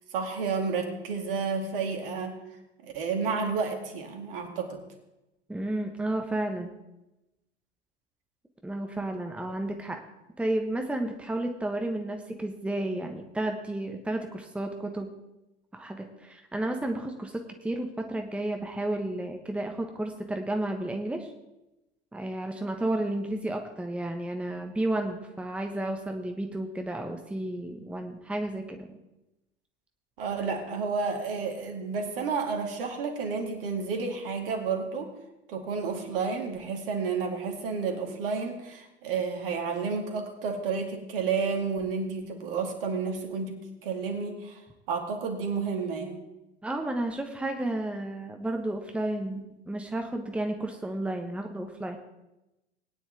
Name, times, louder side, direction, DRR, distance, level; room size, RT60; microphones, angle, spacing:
voice 1, 0.1-2.4 2.8-4.8 30.2-35.1 35.5-44.6 44.9-46.2, right 5 dB, 60° right, 4 dB, 2.4 m, -31 dB
voice 2, 5.5-6.7 8.6-10.0 10.4-15.1 15.7-21.3 22.1-28.9 46.6-52.0, right 1 dB, 5° right, 4 dB, 1.1 m, -32 dB
19.5 x 9.9 x 3.4 m, 0.95 s
figure-of-eight pair, 80°, 32 cm